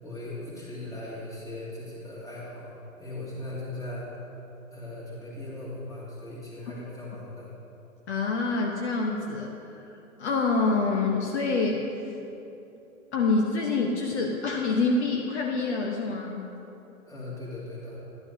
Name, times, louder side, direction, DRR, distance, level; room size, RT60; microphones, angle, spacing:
voice 1, 0.0-2.7 3.0-4.1 4.7-7.5 17.1-18.0, left 2 dB, 10° left, -6 dB, 2.3 m, -38 dB
voice 2, 8.1-11.9 13.1-16.5, left 3 dB, 50° left, 0 dB, 1.0 m, -26 dB
11.5 x 10.5 x 2.8 m, 2.9 s
figure-of-eight pair, 115°, 43 cm